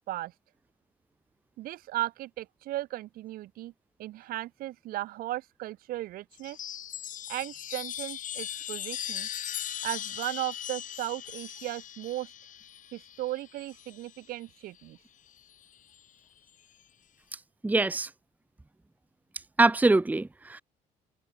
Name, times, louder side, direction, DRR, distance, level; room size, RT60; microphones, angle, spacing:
voice 1, 1.6-3.7 4.0-6.6 7.3-9.3 9.8-12.3 12.9-15.0, right 15 dB, 75° right, 2.3 m, -36 dB
Chime, 6.3-14.2 15.4-16.0, left 10 dB, 60° left, 6.5 m, -39 dB
voice 2, 17.6-18.1 19.6-20.6, right 2 dB, 10° right, 0.8 m, -23 dB
supercardioid pair, 80°, 15 cm